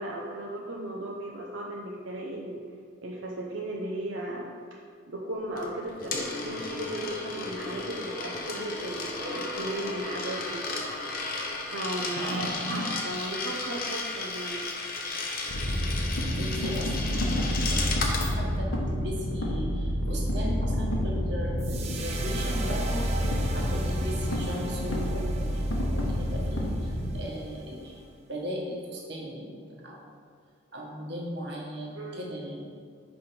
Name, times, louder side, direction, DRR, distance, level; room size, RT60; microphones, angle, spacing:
voice 1, 0.0-2.6 3.0-4.5 5.1-10.6 11.7-14.7 31.9-32.3, right 1 dB, 85° right, -2 dB, 0.7 m, -35 dB
Coin (dropping), 5.6-18.3, left 3 dB, 45° left, 0.8 m, -34 dB
voice 2, 12.0-12.6 16.4-23.1 23.5-30.2 30.7-32.6, equal, 60° right, -2 dB, 1.3 m, -37 dB
sound 1, 15.5-27.2, equal, 85° left, 1.1 m, -29 dB
sound 2, 21.6-28.0, right 3 dB, 35° right, 0.6 m, -41 dB
5.5 x 5.2 x 4.4 m, 2.3 s
head